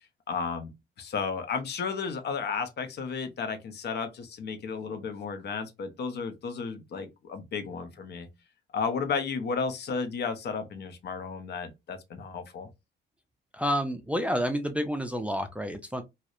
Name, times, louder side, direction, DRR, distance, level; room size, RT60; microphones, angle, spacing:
voice 1, 0.3-0.7 1.0-8.3 8.7-12.7, left 5 dB, 55° left, 0.6 m, -33 dB
voice 2, 13.5-16.0, equal, 5° right, 0.4 m, -29 dB
2.6 x 2.0 x 2.4 m
cardioid pair, 90°, 20 cm